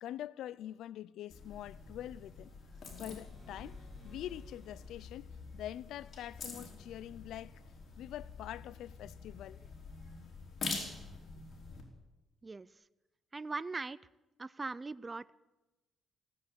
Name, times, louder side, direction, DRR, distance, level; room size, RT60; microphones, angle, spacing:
voice 1, 0.0-2.5 2.9-7.6 8.0-9.6, left 12 dB, 80° left, 0.4 m, -45 dB
sound 1, 1.3-11.8, left 4 dB, 50° left, 4.2 m, -46 dB
sound 2, 2.7-5.1, left 1 dB, ahead, 7.1 m, -54 dB
voice 2, 13.3-14.0 14.4-15.3, right 3 dB, 25° right, 0.4 m, -40 dB
16.5 x 8.5 x 8.5 m
cardioid pair, 90°, 0 cm